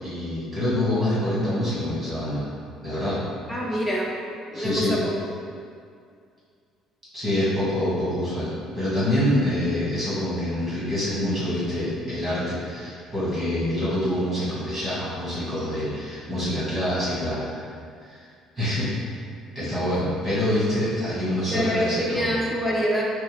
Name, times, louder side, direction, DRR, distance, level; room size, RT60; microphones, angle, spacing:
voice 1, 0.0-2.4 2.8-3.2 4.5-4.9 7.1-17.6 18.0-18.2 18.5-18.9 19.5-22.3, left 1 dB, 25° right, -10 dB, 1.4 m, -26 dB
voice 2, 3.5-4.1 4.5-5.2 21.5-23.0, equal, ahead, -5 dB, 0.4 m, -25 dB
4.5 x 2.7 x 3.3 m, 2.3 s
cardioid pair, 180°, 0 cm